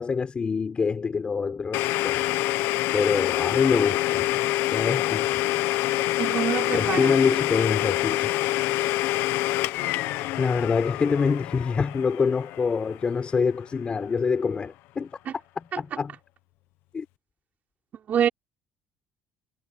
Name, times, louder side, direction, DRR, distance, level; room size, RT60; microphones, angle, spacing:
voice 1, 0.0-2.3 2.9-4.3 4.7-5.4 6.7-8.4 10.1-15.1 15.6-16.1 16.9-17.1, left 5 dB, 30° left, 5.7 m, -26 dB
Domestic sounds home sounds, 1.7-13.4, left 16 dB, 80° left, 1.3 m, -26 dB
voice 2, 6.2-7.2 15.3-15.4 15.7-15.8 18.1-18.3, right 9 dB, 45° right, 4.4 m, -26 dB
cardioid pair, 120°, 4 cm